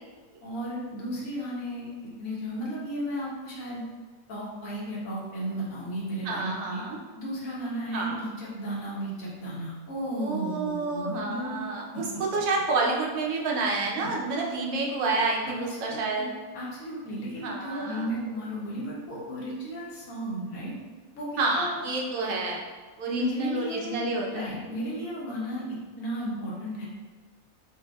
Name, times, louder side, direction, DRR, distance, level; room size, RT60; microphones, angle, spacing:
voice 1, 0.4-1.9 2.2-3.8 4.3-6.8 7.2-11.6 11.9-12.0 15.4-16.3 16.5-20.7 21.1-21.8 23.1-26.9, equal, 75° left, -6 dB, 1.4 m, -34 dB
voice 2, 6.2-7.0 7.9-8.2 10.1-16.3 17.4-18.1 21.4-22.6 23.0-24.5, right 3 dB, 75° right, -2 dB, 1.1 m, -29 dB
5.9 x 2.7 x 2.3 m, 1.4 s
omnidirectional pair, 1.5 m